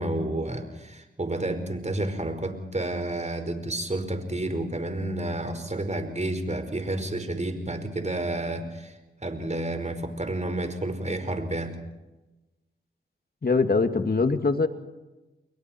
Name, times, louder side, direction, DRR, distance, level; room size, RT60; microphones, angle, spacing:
voice 1, 0.0-8.9 9.2-11.8, right 1 dB, 35° right, 7 dB, 5.0 m, -30 dB
voice 2, 13.4-14.7, left 4 dB, 45° left, 8 dB, 2.3 m, -22 dB
29.5 x 22.0 x 4.5 m, 1.1 s
cardioid pair, 40°, 21 cm